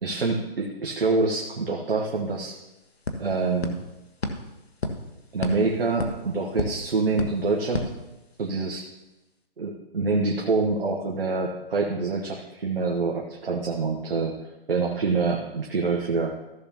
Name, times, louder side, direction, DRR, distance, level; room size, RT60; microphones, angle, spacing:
voice 1, 0.0-2.6 3.2-3.8 5.3-7.9 8.4-8.9 9.6-14.4 14.7-16.3, right 3 dB, 70° right, 1 dB, 1.2 m, -26 dB
sound 1, 1.9-2.0 2.3-8.7, left 2 dB, 85° left, 1.3 m, -34 dB
14.5 x 6.9 x 2.9 m, 0.99 s
figure-of-eight pair, 150°, 31 cm